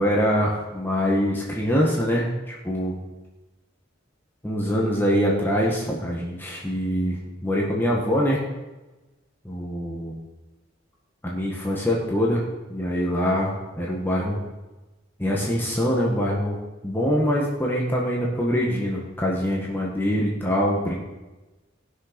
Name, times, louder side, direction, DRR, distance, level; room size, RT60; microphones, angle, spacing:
voice 1, 0.0-3.0 4.4-8.5 9.4-10.2 11.2-12.4 12.7-14.4 15.2-16.6 16.8-21.0, equal, 10° left, -3 dB, 1.4 m, -24 dB
18.0 x 6.4 x 5.1 m, 1.1 s
head